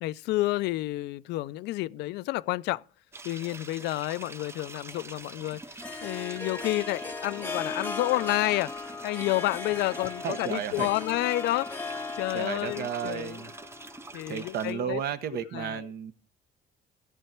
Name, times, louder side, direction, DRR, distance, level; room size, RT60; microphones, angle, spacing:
voice 1, 0.0-2.8 3.2-8.7 9.0-13.5 14.1-15.0 15.3-15.9, left 17 dB, 85° left, 0.4 m, -30 dB
sound 1, 3.1-14.7, right 3 dB, 15° right, 0.6 m, -45 dB
Harp, 4.4-14.8, left 4 dB, 10° left, 0.9 m, -38 dB
voice 2, 10.2-10.9 12.3-13.5 14.3-16.1, right 8 dB, 65° right, 1.1 m, -33 dB
13.5 x 8.2 x 4.4 m
cardioid pair, 110°, 17 cm